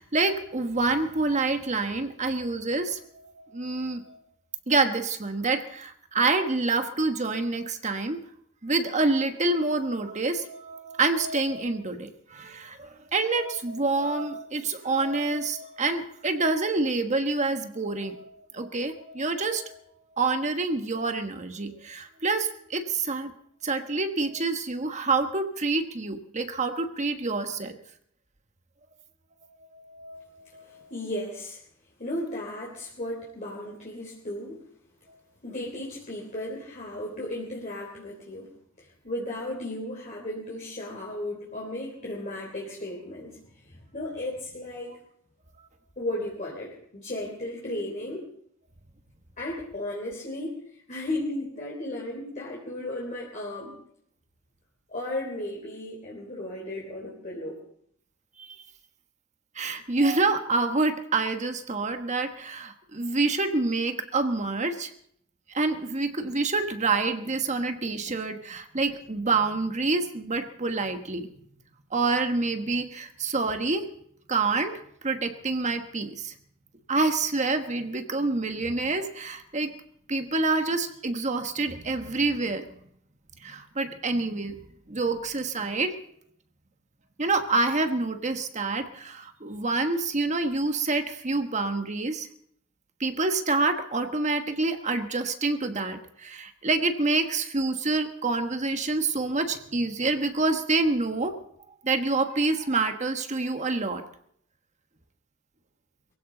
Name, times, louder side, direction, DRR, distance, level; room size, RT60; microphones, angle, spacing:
voice 1, 0.0-4.2 4.7-8.2 8.6-23.3 23.6-27.8 29.6-30.2 30.5-30.9 58.4-58.6 59.5-64.9 65.5-71.3 71.9-73.9 74.3-74.7 75.0-76.3 76.9-79.7 80.1-82.7 83.4-84.6 84.9-86.0 87.2-92.3 93.0-101.4 101.8-104.0, right 3 dB, 35° right, 7 dB, 1.3 m, -27 dB
voice 2, 30.6-31.6 32.0-34.6 35.4-38.5 38.8-45.0 46.0-48.3 49.4-53.8 54.9-57.6, left 1 dB, 40° left, -3 dB, 3.5 m, -35 dB
22.5 x 16.0 x 3.9 m, 0.68 s
head